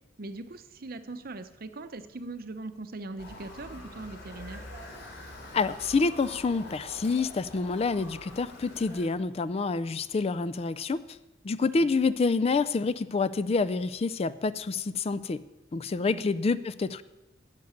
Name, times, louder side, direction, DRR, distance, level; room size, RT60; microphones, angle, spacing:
voice 1, 0.2-4.6 11.6-11.9 16.1-16.3, right 2 dB, 50° right, 11 dB, 0.7 m, -41 dB
Motor vehicle (road) / Siren, 3.2-9.1, left 1 dB, 65° left, 3.0 m, -45 dB
voice 2, 5.5-11.0 11.4-15.4 15.7-17.0, left 4 dB, 35° left, 16 dB, 0.4 m, -27 dB
10.5 x 6.6 x 9.3 m, 1.1 s
head